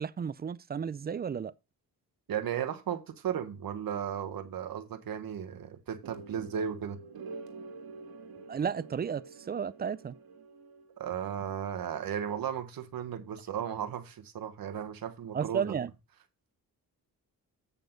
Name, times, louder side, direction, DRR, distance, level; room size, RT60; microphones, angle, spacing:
voice 1, 0.0-1.5 8.5-10.1 15.3-15.9, right 7 dB, 25° right, 0.4 m, -33 dB
voice 2, 2.3-7.0 11.0-15.7, right 8 dB, 70° right, 1.3 m, -35 dB
sound 1, 6.0-11.1, right 4 dB, 85° right, 1.8 m, -47 dB
8.3 x 6.7 x 3.8 m
cardioid pair, 110°, 36 cm